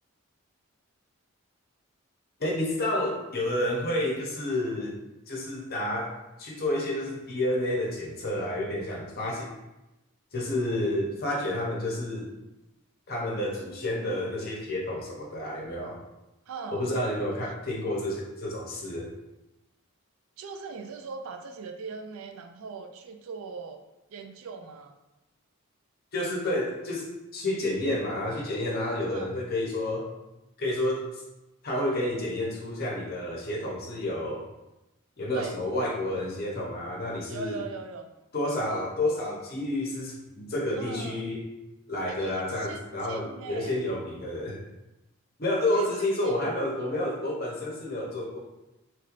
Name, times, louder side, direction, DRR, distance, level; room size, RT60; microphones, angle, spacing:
voice 1, 2.4-4.9 5.3-9.5 10.3-12.3 13.1-16.0 16.7-19.1 26.1-30.1 30.6-31.1 31.6-34.4 35.2-37.6 38.3-41.4 41.9-44.6 45.4-48.4, left 1 dB, 45° left, -2 dB, 0.7 m, -30 dB
voice 2, 16.5-16.9 17.4-17.5 20.4-23.8 24.1-25.0 29.1-29.3 35.3-35.5 37.3-38.1 40.8-41.2 42.1-43.8 45.7-45.9 46.2-46.5, right 4 dB, 80° right, 6 dB, 0.3 m, -40 dB
3.1 x 3.1 x 2.4 m, 0.96 s
head